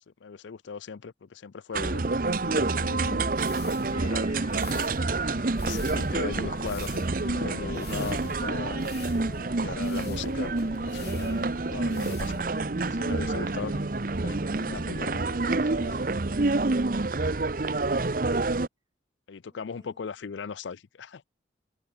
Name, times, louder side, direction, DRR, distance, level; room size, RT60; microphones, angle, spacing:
voice 1, 0.2-3.3 3.6-4.9 5.6-11.4 11.7-12.5 12.9-13.8 14.2-15.8 16.4-16.7 19.3-21.3, left 5 dB, 75° left, 0.5 m, -39 dB
sound 1, 1.7-18.7, right 3 dB, 45° right, 0.8 m, -28 dB
sound 2, 3.3-12.7, left 11 dB, 60° left, 6.5 m, -50 dB
sound 3, 3.9-16.1, left 2 dB, 30° left, 1.8 m, -48 dB
voice 2, 13.2-13.7 19.4-20.3, equal, 20° right, 3.1 m, -54 dB
head